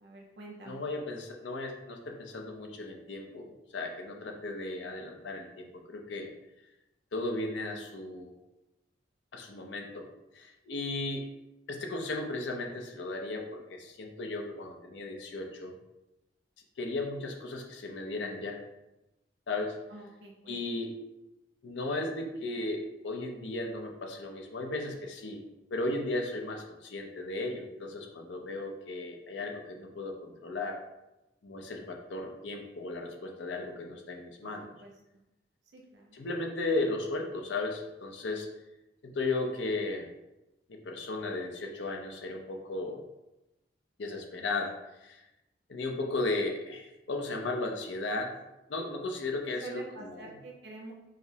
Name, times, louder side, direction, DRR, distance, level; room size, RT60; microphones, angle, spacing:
voice 1, 0.0-0.8 19.9-20.6 34.8-34.9 35.7-36.1 49.6-50.9, right 2 dB, 70° right, -1 dB, 0.6 m, -46 dB
voice 2, 0.6-6.3 7.1-8.3 9.3-10.1 10.3-11.2 11.7-15.7 16.8-18.6 19.5-19.7 20.5-20.9 21.6-25.4 25.7-30.8 31.4-34.7 36.1-38.5 39.0-40.1 40.7-43.0 44.0-44.8 45.0-45.2 45.7-48.3 48.7-50.4, left 2 dB, 75° left, 2 dB, 0.5 m, -35 dB
4.9 x 2.0 x 2.7 m, 0.95 s
head